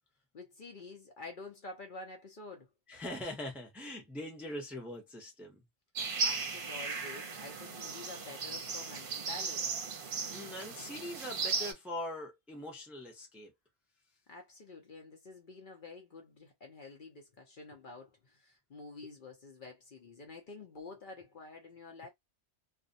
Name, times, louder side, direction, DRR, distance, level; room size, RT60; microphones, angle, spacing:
voice 1, 0.3-2.7 6.2-9.8 14.3-22.1, left 3 dB, 55° left, 0.7 m, -49 dB
voice 2, 2.9-5.6 10.3-13.5, left 1 dB, ahead, 0.6 m, -42 dB
sound 1, 6.0-11.7, right 4 dB, 55° right, 0.8 m, -36 dB
2.5 x 2.1 x 2.6 m
omnidirectional pair, 1.2 m